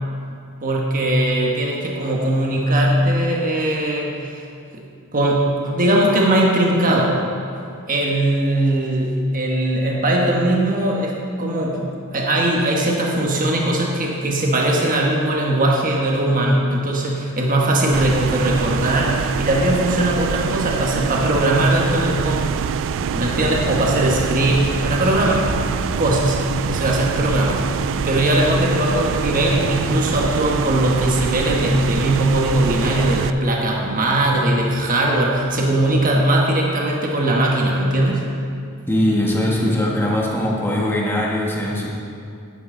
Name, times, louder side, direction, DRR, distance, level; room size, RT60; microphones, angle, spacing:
voice 1, 0.6-4.4 4.7-4.8 5.1-7.2 7.9-22.6 22.9-25.5 26.0-26.4 26.7-38.2, right 1 dB, 40° right, -2 dB, 1.3 m, -20 dB
sound 1, 17.9-33.3, right 7 dB, 60° right, 0.3 m, -25 dB
sound 2, 22.9-36.1, equal, 30° left, 3.0 m, -37 dB
voice 2, 38.9-41.9, left 1 dB, 10° left, -4 dB, 1.5 m, -20 dB
11.5 x 10.0 x 3.8 m, 2.4 s
head